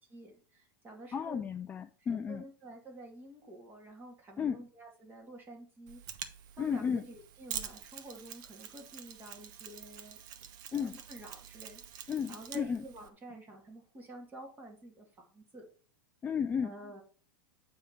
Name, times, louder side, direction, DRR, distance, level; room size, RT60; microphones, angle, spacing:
voice 1, 0.1-1.4 2.0-6.0 6.6-10.2 10.7-15.7 16.6-17.0, right 1 dB, 15° right, 0 dB, 2.4 m, -50 dB
voice 2, 1.1-2.4 4.4-4.6 6.6-7.0 10.7-11.0 12.1-12.8 16.2-16.7, left 7 dB, 15° left, 11 dB, 0.3 m, -33 dB
Mechanisms, 5.9-13.1, right 9 dB, 55° right, 1.1 m, -46 dB
8.6 x 3.6 x 5.9 m, 0.41 s
supercardioid pair, 135°, 11 cm